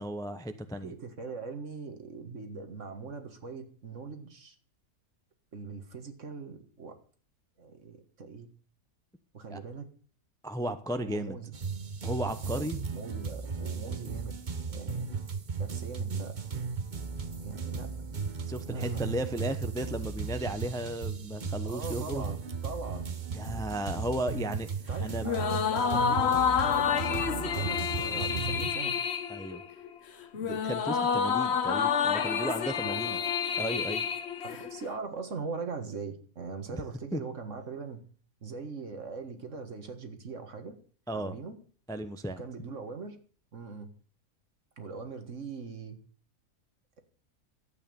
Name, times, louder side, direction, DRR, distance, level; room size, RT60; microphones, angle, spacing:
voice 1, 0.0-0.9 9.5-9.6 10.4-11.4 12.0-12.8 18.5-22.2 23.3-24.7 25.0-25.4 29.3-29.6 30.4-33.2 33.6-34.1 36.7-36.8 37.1-37.2 41.1-41.4 41.9-42.4, right 1 dB, 5° left, 10 dB, 0.7 m, -35 dB
voice 2, 0.8-4.5 5.5-7.0 7.6-8.5 9.3-9.9 11.0-11.5 12.4-14.3 14.7-15.1 15.6-16.4 17.4-17.9 18.7-19.2 21.7-23.1 24.8-29.0 32.8-33.2 34.4-38.0 38.4-40.7 41.1-41.5 42.4-43.2 43.5-43.9 44.8-46.0, right 4 dB, 55° right, 7 dB, 2.0 m, -41 dB
sound 1, 11.5-28.7, right 5 dB, 35° right, 1.0 m, -36 dB
sound 2, 25.2-34.9, left 7 dB, 50° left, 1.1 m, -29 dB
12.5 x 8.5 x 7.0 m, 0.44 s
omnidirectional pair, 1.5 m